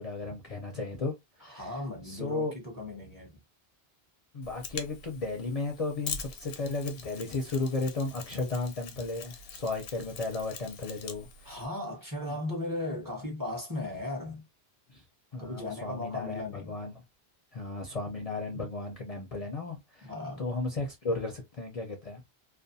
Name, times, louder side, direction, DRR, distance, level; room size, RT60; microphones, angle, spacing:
voice 1, 0.0-1.8 2.0-2.5 4.3-11.6 12.3-12.4 14.9-15.0 15.3-17.0 17.5-20.1 20.4-22.2, left 3 dB, 45° left, 0.6 m, -34 dB
voice 2, 1.4-3.4 11.4-14.4 15.4-16.7 18.5-18.7 20.0-20.5, left 2 dB, 20° right, 0.7 m, -37 dB
Mechanisms, 4.4-11.6, left 6 dB, 80° left, 0.9 m, -43 dB
2.4 x 2.3 x 2.6 m
omnidirectional pair, 1.1 m